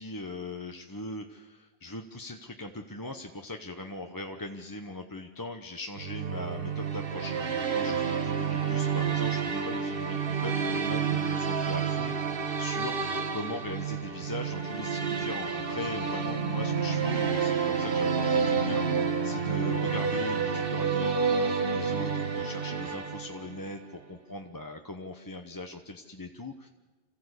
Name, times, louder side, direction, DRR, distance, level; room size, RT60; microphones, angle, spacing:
voice 1, 0.0-13.0 13.3-26.7, left 2 dB, 20° left, 4 dB, 0.9 m, -40 dB
sound 1, 6.0-23.7, right 6 dB, 60° right, 1.6 m, -29 dB
27.5 x 15.5 x 8.2 m, 1.3 s
omnidirectional pair, 1.1 m